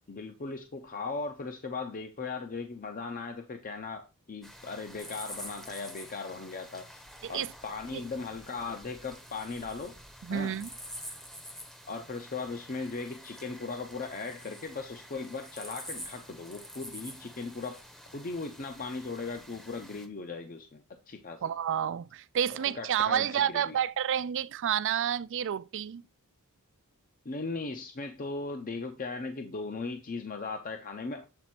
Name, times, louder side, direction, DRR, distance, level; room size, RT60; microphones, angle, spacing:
voice 1, 0.1-7.0 7.3-9.9 10.3-10.6 11.9-17.8 18.1-21.4 22.5-23.8 27.2-31.2, left 4 dB, 40° left, 0.6 m, -38 dB
sound 1, 4.4-20.1, equal, ahead, 0.8 m, -47 dB
voice 2, 10.2-10.7 21.4-26.0, right 9 dB, 60° right, 0.4 m, -30 dB
7.8 x 4.1 x 4.4 m
head